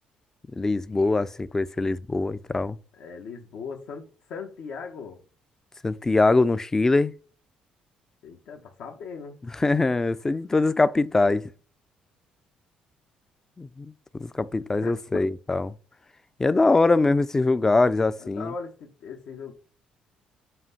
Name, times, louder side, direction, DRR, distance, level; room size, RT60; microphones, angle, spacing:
voice 1, 0.5-2.8 5.8-7.1 9.6-11.4 13.6-15.7 16.4-18.5, left 3 dB, 20° left, 0.4 m, -23 dB
voice 2, 2.9-5.2 8.2-9.4 14.8-15.2 18.2-19.5, left 5 dB, 70° left, 1.1 m, -39 dB
7.6 x 2.7 x 5.6 m
cardioid pair, 110°, 3 cm